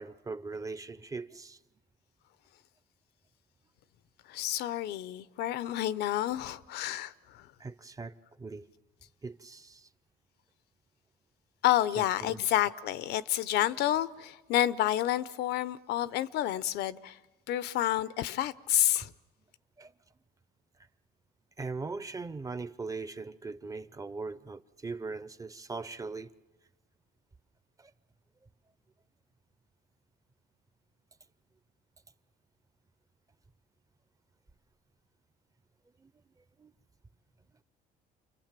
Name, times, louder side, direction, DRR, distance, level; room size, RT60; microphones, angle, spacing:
voice 1, 0.0-1.6 7.6-8.1 8.4-8.7 9.2-9.9 12.0-12.4 19.8-19.9 21.6-26.3 27.8-27.9 36.0-36.1 36.6-36.7, right 4 dB, 20° right, 0.8 m, -40 dB
voice 2, 4.3-7.1 11.6-17.2 17.5-19.1, left 13 dB, 80° left, 0.8 m, -29 dB
29.0 x 23.5 x 7.5 m
cardioid pair, 110°, 17 cm